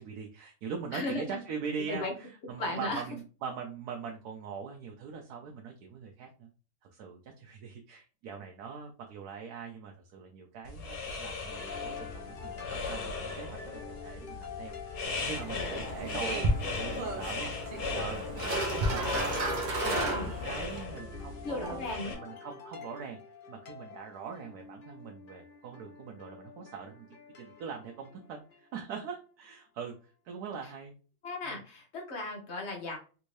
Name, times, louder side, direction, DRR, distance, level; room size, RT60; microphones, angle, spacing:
voice 1, 0.0-6.5 6.8-16.4 16.7-17.5 17.9-19.4 19.8-23.2 23.5-27.1 27.4-30.9 31.4-31.6, right 6 dB, 85° right, 2 dB, 1.2 m, -42 dB
voice 2, 0.9-1.4 1.9-2.1 2.6-3.0 19.8-20.3 21.4-22.4 31.2-33.0, left 2 dB, 50° left, 1 dB, 1.1 m, -36 dB
sound 1, 10.6-22.1, left 4 dB, 70° left, 1.3 m, -38 dB
sound 2, 11.5-29.3, left 6 dB, 90° left, 0.4 m, -46 dB
sound 3, 15.0-20.8, right 2 dB, 50° right, 0.6 m, -33 dB
3.4 x 2.6 x 3.1 m, 0.36 s
omnidirectional pair, 1.6 m